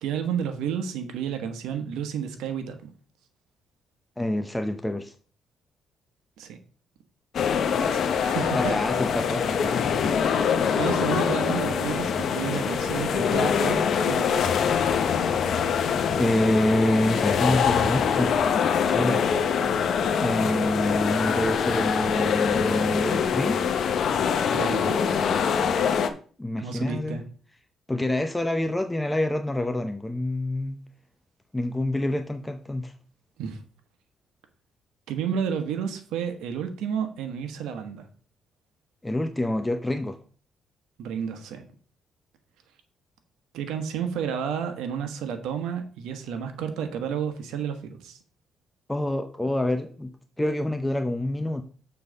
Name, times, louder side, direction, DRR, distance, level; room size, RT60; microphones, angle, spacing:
voice 1, 0.0-2.9 6.4-6.6 7.7-8.8 10.7-14.7 24.5-25.0 26.6-27.2 33.4-33.6 35.1-38.1 41.0-41.6 43.5-48.2, right 8 dB, 90° right, 7 dB, 1.2 m, -31 dB
voice 2, 4.2-5.1 8.5-10.1 16.2-18.4 18.9-19.3 20.2-23.6 26.4-27.2 27.9-30.8 31.5-32.9 39.0-40.2 48.9-50.1 50.4-51.6, left 1 dB, 10° left, 7 dB, 0.7 m, -27 dB
sound 1, 7.3-26.1, left 7 dB, 60° left, 0.9 m, -24 dB
7.1 x 4.0 x 6.5 m, 0.42 s
cardioid pair, 90°, 0 cm